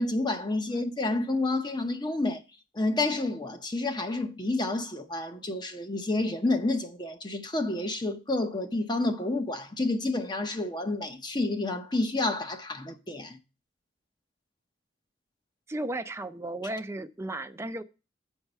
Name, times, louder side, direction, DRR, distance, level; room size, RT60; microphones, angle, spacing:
voice 1, 0.0-2.4 2.7-13.4, left 2 dB, 25° left, 0.8 m, -29 dB
voice 2, 15.7-17.8, right 1 dB, 15° right, 0.5 m, -34 dB
7.8 x 4.6 x 5.4 m
head